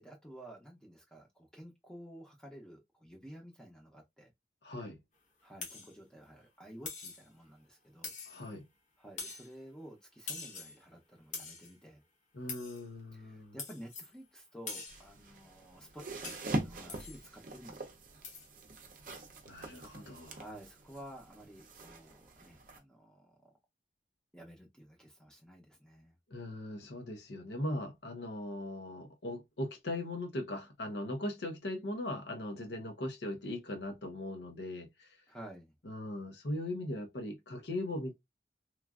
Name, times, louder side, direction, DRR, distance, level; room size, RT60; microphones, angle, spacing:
voice 1, 0.0-4.3 5.4-8.1 9.0-12.0 13.1-17.9 20.3-23.5 24.3-26.2 35.3-35.7, right 1 dB, 5° left, 0.6 m, -52 dB
voice 2, 4.6-5.0 8.3-8.6 12.3-13.5 19.5-20.4 26.3-35.2 35.8-38.1, left 1 dB, 80° left, 0.8 m, -39 dB
sound 1, 5.6-5.9 6.8-7.3 8.0-8.5 9.2-9.5 10.3-10.8 11.3-11.7 12.5-12.8 13.6-14.1 14.7-15.1 16.2-16.5 16.9-17.2 18.2-18.5, left 4 dB, 45° left, 0.9 m, -44 dB
sound 2, 14.9-22.8, right 2 dB, 50° right, 0.6 m, -43 dB
3.1 x 2.4 x 2.3 m
head